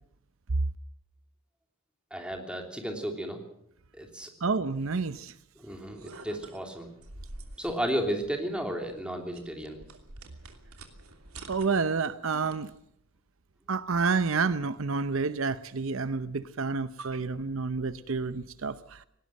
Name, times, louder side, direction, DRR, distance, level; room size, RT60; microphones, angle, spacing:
voice 1, 2.1-3.4 3.9-4.3 5.6-6.9 7.6-9.8, equal, 5° right, 3.2 m, -33 dB
voice 2, 4.4-5.3 11.5-12.7 13.7-19.0, right 4 dB, 65° right, 0.7 m, -29 dB
sound 1, 5.7-12.8, right 2 dB, 85° right, 2.9 m, -49 dB
19.0 x 18.0 x 7.6 m
head